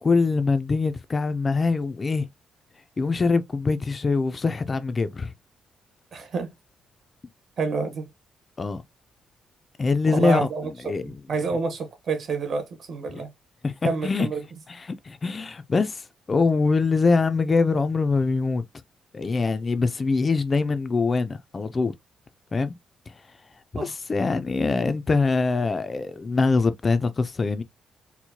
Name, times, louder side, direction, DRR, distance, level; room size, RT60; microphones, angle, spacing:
voice 1, 0.0-2.3 3.0-5.3 8.6-8.8 9.8-10.5 10.9-11.1 13.6-13.7 14.0-14.3 14.7-18.6 19.1-21.9 22.5-22.7 23.1-23.2 23.7-27.6, left 4 dB, 25° left, 0.3 m, -23 dB
voice 2, 6.1-6.5 7.6-8.1 10.1-10.7 11.0-13.3 13.8-14.4 23.8-23.9, right 4 dB, 55° right, 1.0 m, -28 dB
4.4 x 2.1 x 2.7 m
cardioid pair, 140°, 0 cm